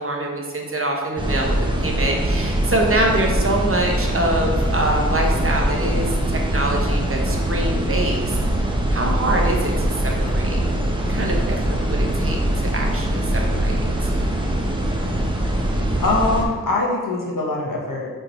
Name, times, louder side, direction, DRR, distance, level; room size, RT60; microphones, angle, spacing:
voice 1, 0.0-8.4 8.9-10.6 10.9-14.1, right 1 dB, 40° right, 0 dB, 1.0 m, -25 dB
sound 1, 1.2-16.4, right 1 dB, 15° right, 0.9 m, -22 dB
voice 2, 16.0-18.1, left 2 dB, 70° left, -2 dB, 1.3 m, -22 dB
5.0 x 4.5 x 4.5 m, 1.4 s
wide cardioid pair, 75°, 34 cm